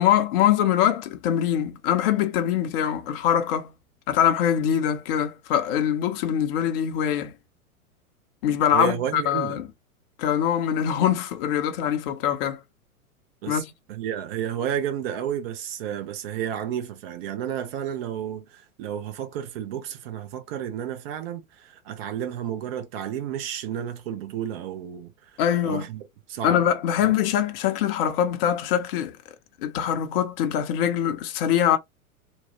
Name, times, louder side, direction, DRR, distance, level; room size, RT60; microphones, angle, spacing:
voice 1, 0.0-3.7 4.1-7.3 8.4-9.7 10.2-12.6 13.5-13.7 25.4-25.8 26.4-29.2 29.6-31.8, left 10 dB, 40° left, 0.7 m, -23 dB
voice 2, 8.7-9.6 13.4-13.6 13.9-26.0 26.3-26.7 27.0-27.2, right 9 dB, 40° right, 0.8 m, -31 dB
3.0 x 2.2 x 2.9 m
figure-of-eight pair, 100°, 43 cm